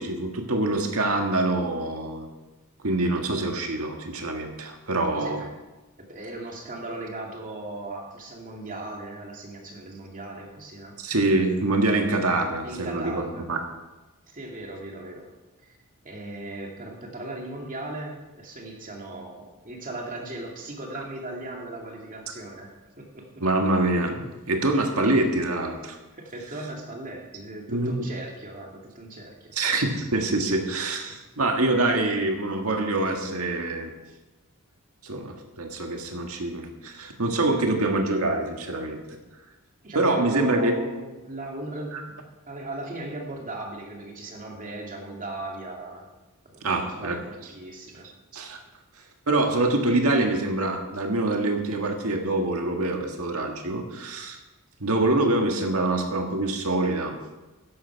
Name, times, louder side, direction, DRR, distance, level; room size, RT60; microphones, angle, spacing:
voice 1, 0.0-2.3 2.8-5.4 11.0-13.6 23.4-26.0 27.7-28.1 29.5-33.9 35.0-39.0 40.0-40.7 41.9-42.0 46.6-47.2 48.3-48.6 49.3-54.4 54.8-57.2, right 2 dB, 75° right, 3 dB, 1.8 m, -25 dB
voice 2, 5.1-5.6 6.0-11.0 12.6-13.5 14.3-15.3 15.6-15.8 16.0-23.4 25.9-29.5 31.1-31.2 39.8-46.1 46.4-48.1, right 1 dB, 40° right, 0 dB, 2.4 m, -38 dB
13.5 x 11.0 x 4.7 m, 1.1 s
head